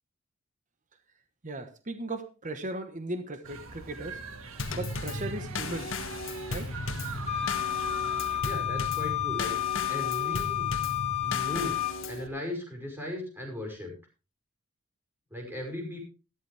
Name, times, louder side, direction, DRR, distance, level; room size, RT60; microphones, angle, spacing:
voice 1, 1.4-4.2 4.7-6.0 6.5-6.7, right 2 dB, 35° right, 8 dB, 1.3 m, -37 dB
sound 1, 3.4-8.4, right 4 dB, 65° right, 1.7 m, -42 dB
Drum kit / Snare drum / Bass drum, 4.6-12.3, left 2 dB, 60° left, 1.6 m, -36 dB
Wind instrument woodwind instrument, 7.3-12.0, left 13 dB, 30° left, 1.4 m, -31 dB
voice 2, 8.4-9.6 9.9-10.7 11.2-11.8 12.1-13.9 15.3-16.0, left 1 dB, 10° right, 1 dB, 5.6 m, -37 dB
13.5 x 13.0 x 3.5 m, 0.32 s
head